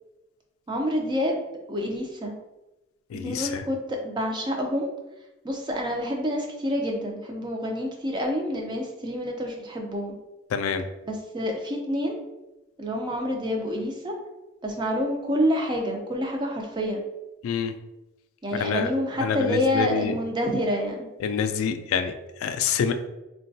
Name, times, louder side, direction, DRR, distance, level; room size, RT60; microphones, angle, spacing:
voice 1, 0.7-1.4 1.7-2.3 3.2-4.9 5.4-10.2 11.1-12.2 12.8-14.1 14.6-17.0 18.4-21.1, equal, 20° right, 1 dB, 0.4 m, -28 dB
voice 2, 3.1-3.6 10.5-10.9 17.4-17.7 18.5-18.9 19.2-20.1 21.2-22.9, left 6 dB, 75° left, 9 dB, 0.3 m, -27 dB
3.8 x 2.2 x 2.7 m, 1.0 s
head